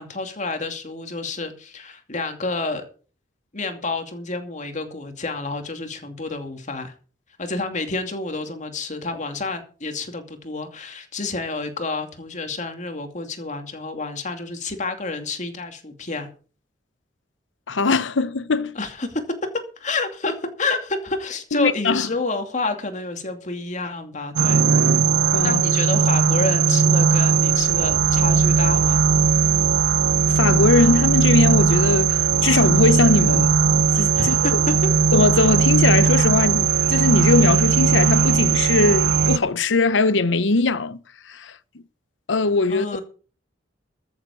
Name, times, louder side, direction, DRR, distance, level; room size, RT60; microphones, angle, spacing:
voice 1, 0.0-2.8 3.5-6.9 7.4-16.3 18.7-19.2 19.8-24.6 25.4-29.1 34.1-34.7 42.7-43.0, left 3 dB, 40° left, 2.5 m, -29 dB
voice 2, 17.7-18.7 21.6-22.1 25.3-25.6 30.3-33.5 33.9-34.3 35.1-41.0 41.3-41.5 42.3-43.0, left 3 dB, 85° left, 0.8 m, -20 dB
sound 1, 24.4-39.4, right 6 dB, 60° right, 0.6 m, -18 dB
13.5 x 7.3 x 7.0 m
head